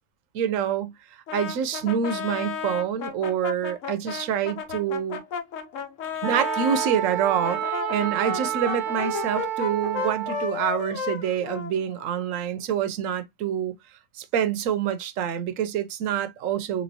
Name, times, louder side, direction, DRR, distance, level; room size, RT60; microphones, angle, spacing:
voice 1, 0.3-0.9 1.3-5.2 6.2-13.7 14.2-16.8, right 8 dB, 80° right, 1.0 m, -26 dB
Brass instrument, 1.3-6.9 7.4-12.2, left 7 dB, 75° left, 1.0 m, -33 dB
Wind instrument woodwind instrument, 6.2-10.5, right 12 dB, 55° right, 0.6 m, -29 dB
3.3 x 3.0 x 2.6 m
omnidirectional pair, 1.4 m